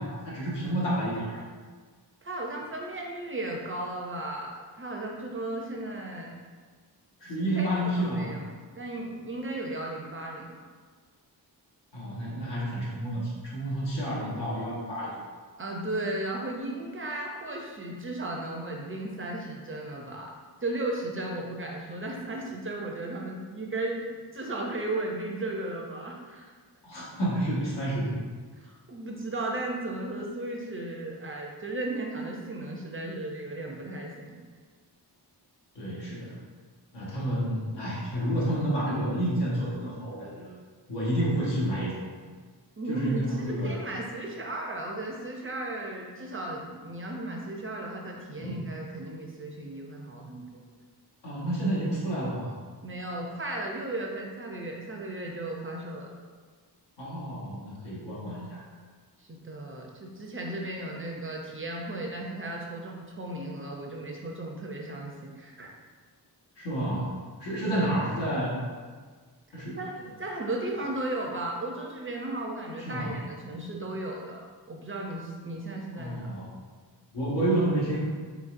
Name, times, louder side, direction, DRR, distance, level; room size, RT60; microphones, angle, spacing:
voice 1, 0.0-1.4 7.2-8.3 11.9-15.2 26.8-28.2 35.7-36.3 36.9-40.5 40.9-41.9 42.9-43.8 48.4-48.6 51.2-52.5 57.0-58.6 66.6-67.1 67.4-68.6 69.5-69.8 72.8-73.2 75.9-76.6 77.1-78.0, right 1 dB, 85° left, -7 dB, 1.4 m, -30 dB
voice 2, 2.2-6.4 7.4-8.5 8.7-10.6 15.6-20.3 20.6-24.1 24.3-26.5 28.6-34.4 42.8-50.6 52.8-56.1 59.2-65.7 67.5-67.8 69.8-69.9 70.2-74.4 74.7-76.2, right 2 dB, 30° right, -1 dB, 0.5 m, -35 dB
4.2 x 3.9 x 2.5 m, 1.5 s
wide cardioid pair, 170°, 42 cm